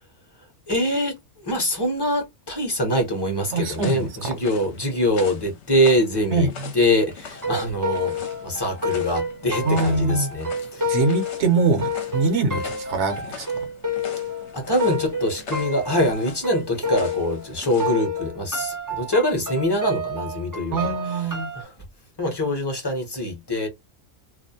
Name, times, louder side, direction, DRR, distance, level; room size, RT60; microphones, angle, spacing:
voice 1, 0.7-11.0 14.5-21.7 22.2-23.7, left 1 dB, 25° left, 0.7 m, -24 dB
sound 1, 2.9-18.0, left 6 dB, 65° left, 0.9 m, -42 dB
voice 2, 3.5-4.3 6.3-6.7 9.6-10.3 10.9-13.7 20.7-21.5, right 3 dB, 65° right, 0.9 m, -23 dB
sound 2, 7.3-17.5 17.8-21.6, left 2 dB, 25° right, 0.5 m, -29 dB
2.4 x 2.1 x 2.6 m
omnidirectional pair, 1.4 m